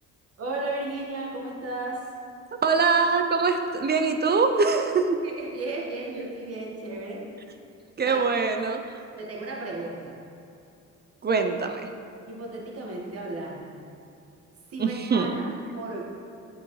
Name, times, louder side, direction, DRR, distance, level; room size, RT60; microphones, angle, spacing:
voice 1, 0.4-2.1 5.1-7.3 8.0-8.3 9.2-10.2 12.3-13.9 14.7-16.1, right 2 dB, 50° right, -2 dB, 1.6 m, -34 dB
voice 2, 2.6-5.0 8.0-8.8 11.2-11.8 14.8-15.3, right 4 dB, 35° right, 6 dB, 0.5 m, -23 dB
8.7 x 6.3 x 3.1 m, 2.7 s
cardioid pair, 90°, 30 cm